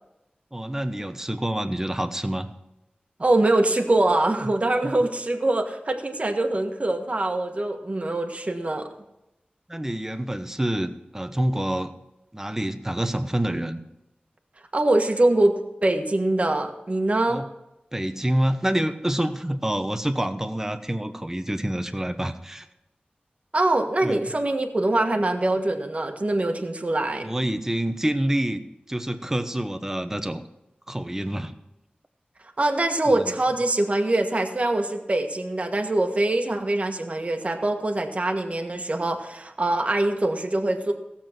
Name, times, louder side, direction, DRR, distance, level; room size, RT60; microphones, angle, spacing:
voice 1, 0.5-2.5 4.4-4.5 4.8-4.9 9.7-11.9 12.3-13.8 17.3-17.5 17.9-22.7 24.0-24.3 27.2-30.4 30.9-31.5 33.1-33.3, right 1 dB, 15° right, 8 dB, 1.0 m, -27 dB
voice 2, 3.2-8.9 14.7-17.4 23.5-27.3 32.6-40.9, right 2 dB, 40° right, 3 dB, 1.5 m, -23 dB
16.5 x 7.2 x 6.0 m, 0.90 s
wide cardioid pair, 80°, 3 cm